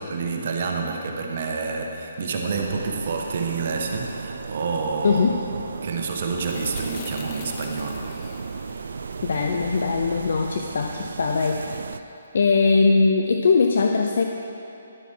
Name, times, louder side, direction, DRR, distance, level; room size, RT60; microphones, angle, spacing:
voice 1, 0.1-5.4 5.8-8.4, right 4 dB, 55° right, 2 dB, 1.2 m, -28 dB
sound 1, 2.5-12.0, right 5 dB, 70° right, 0.4 m, -35 dB
voice 2, 5.0-5.4 9.2-11.8 12.3-14.2, left 4 dB, 65° left, 4 dB, 0.5 m, -21 dB
sound 2, 5.5-12.1, left 5 dB, 35° left, 0.8 m, -45 dB
11.5 x 8.2 x 4.6 m, 2.9 s
hypercardioid pair, 145°, 0 cm